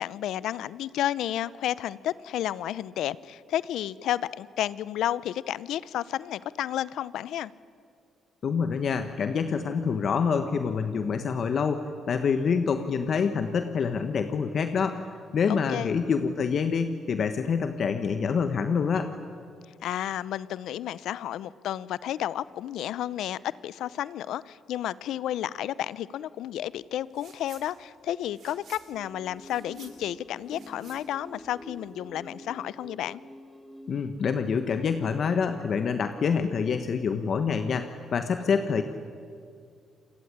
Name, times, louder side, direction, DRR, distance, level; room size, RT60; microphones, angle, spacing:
voice 1, 0.0-7.5 15.5-15.9 19.8-33.2, left 12 dB, 80° left, 19 dB, 0.7 m, -32 dB
voice 2, 8.4-15.1 15.3-19.1 33.9-38.8, left 6 dB, 55° left, 8 dB, 1.4 m, -26 dB
sound 1, 27.1-27.7 28.0-31.9, right 7 dB, 60° right, 4.6 m, -53 dB
sound 2, 28.9-34.1, equal, ahead, 3.2 m, -47 dB
28.0 x 20.0 x 9.9 m, 2.3 s
cardioid pair, 85°, 0 cm